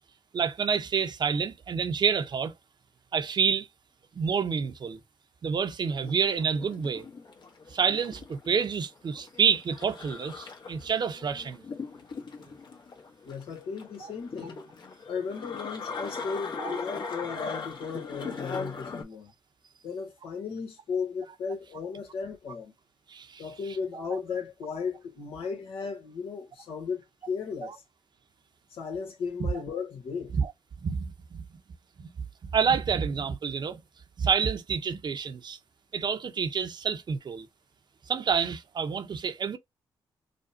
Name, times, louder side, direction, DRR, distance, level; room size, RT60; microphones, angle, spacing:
voice 1, 0.3-2.5 3.1-3.7 4.2-5.0 5.4-7.0 7.7-11.6 16.6-16.7 23.1-23.4 27.6-27.7 29.4-29.5 30.3-30.5 30.8-31.4 32.0-32.1 32.5-33.8 34.2-35.6 35.9-37.5 38.1-39.6, right 6 dB, 50° right, 0.8 m, -28 dB
sound 1, 5.8-19.0, left 4 dB, 55° left, 1.2 m, -39 dB
voice 2, 13.2-14.6 15.1-19.3 19.8-22.7 23.4-27.8 28.7-30.4, left 5 dB, 80° left, 1.5 m, -35 dB
5.0 x 2.3 x 2.7 m
cardioid pair, 75°, 9 cm